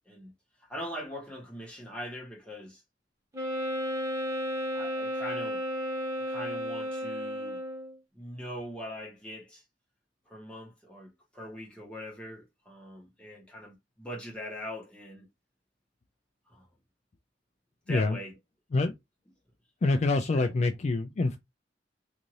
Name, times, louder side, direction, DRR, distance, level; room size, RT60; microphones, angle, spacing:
voice 1, 0.7-2.8 4.7-5.6 6.3-7.6 8.1-9.6 10.3-15.3 16.5-16.7 17.9-18.4 20.3-20.5, equal, 5° left, 1.1 m, -41 dB
Wind instrument woodwind instrument, 3.3-8.0, equal, 20° right, 0.8 m, -33 dB
voice 2, 19.8-21.4, left 3 dB, 40° left, 0.3 m, -26 dB
2.6 x 2.5 x 3.0 m
head